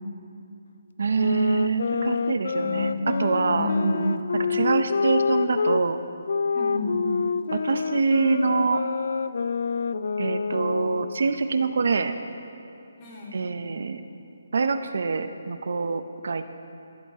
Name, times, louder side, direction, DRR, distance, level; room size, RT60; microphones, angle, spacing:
voice 1, 1.0-3.7 4.3-6.0 7.5-8.8 10.2-12.1 13.3-14.0 14.5-16.6, right 4 dB, 65° right, 9 dB, 0.8 m, -25 dB
sound 1, 1.1-5.8 6.3-11.2, left 5 dB, 60° left, 0.4 m, -27 dB
voice 2, 2.6-3.1 3.4-4.2 6.5-7.1 13.0-13.4, left 1 dB, 25° left, -5 dB, 3.4 m, -29 dB
20.0 x 13.0 x 3.7 m, 2.7 s
hypercardioid pair, 170°, 0 cm